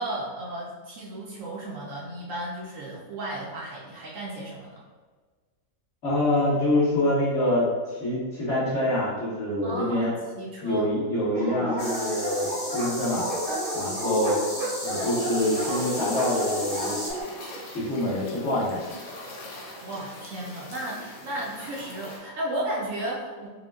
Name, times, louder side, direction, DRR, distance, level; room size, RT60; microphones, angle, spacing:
voice 1, 0.0-4.8 9.6-10.9 11.5-11.7 19.8-23.5, right 1 dB, 70° right, -4 dB, 1.0 m, -34 dB
voice 2, 6.0-10.1 10.6-12.5 12.7-13.3 13.7-14.4 14.8-17.0 17.7-18.8, left 1 dB, 55° left, -12 dB, 2.0 m, -25 dB
Dog, 11.3-17.2, equal, 45° right, 0.9 m, -31 dB
sound 1, 11.8-17.1, left 1 dB, 90° left, 1.7 m, -35 dB
sound 2, 15.4-22.2, left 1 dB, 75° left, 1.2 m, -43 dB
5.0 x 2.2 x 2.3 m, 1.4 s
omnidirectional pair, 1.5 m